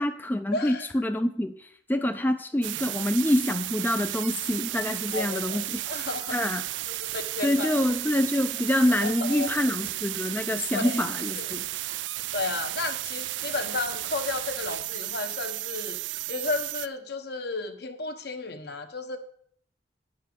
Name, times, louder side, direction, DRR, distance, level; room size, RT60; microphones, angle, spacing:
voice 1, 0.0-5.8 6.3-6.6 7.4-11.6, left 1 dB, 10° left, 8 dB, 0.4 m, -26 dB
voice 2, 0.5-0.9 5.1-6.5 6.9-7.8 9.0-9.5 10.7-11.0 11.4-11.6 12.3-16.0 16.3-19.2, left 3 dB, 65° left, 7 dB, 1.1 m, -33 dB
sound 1, 2.6-16.9, right 16 dB, 85° right, 0.4 m, -33 dB
9.7 x 5.6 x 6.8 m, 0.62 s
head